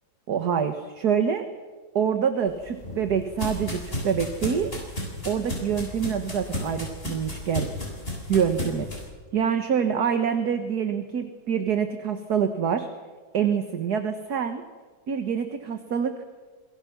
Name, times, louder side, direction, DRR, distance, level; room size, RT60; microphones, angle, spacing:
voice 1, 0.3-1.4 1.9-4.7 5.2-7.7 8.3-8.9 9.3-12.9 13.3-14.6 15.1-16.2, right 7 dB, 55° right, 7 dB, 1.8 m, -26 dB
sound 1, 2.5-9.0, left 1 dB, 25° left, 8.1 m, -34 dB
27.5 x 23.0 x 6.0 m, 1.4 s
omnidirectional pair, 2.1 m